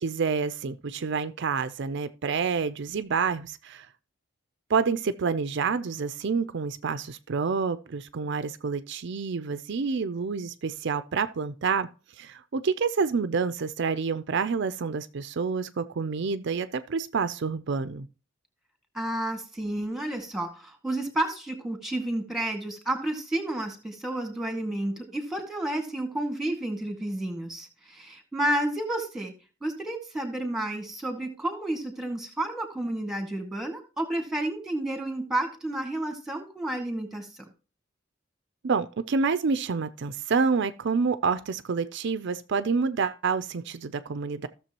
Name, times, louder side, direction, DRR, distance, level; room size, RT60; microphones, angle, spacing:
voice 1, 0.0-3.9 4.7-11.9 12.2-18.1 38.6-44.5, right 5 dB, 60° right, 0.5 m, -28 dB
voice 2, 18.9-29.3 29.6-37.4, right 1 dB, ahead, 1.9 m, -31 dB
15.0 x 6.8 x 3.0 m
head